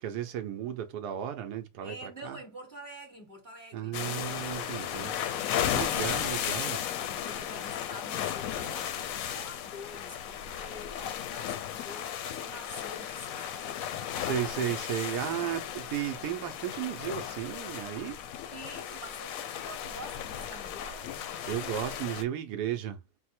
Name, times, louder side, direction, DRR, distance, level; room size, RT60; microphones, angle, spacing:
voice 1, 0.0-2.4 3.7-5.2 5.7-6.8 14.2-18.2 21.4-23.0, right 10 dB, 80° right, 1.2 m, -34 dB
voice 2, 1.8-4.0 5.3-6.0 7.0-13.8 18.5-21.3, equal, 30° right, 1.3 m, -47 dB
sound 1, 3.9-22.2, left 10 dB, 70° left, 0.9 m, -35 dB
4.9 x 2.0 x 4.2 m
omnidirectional pair, 1.7 m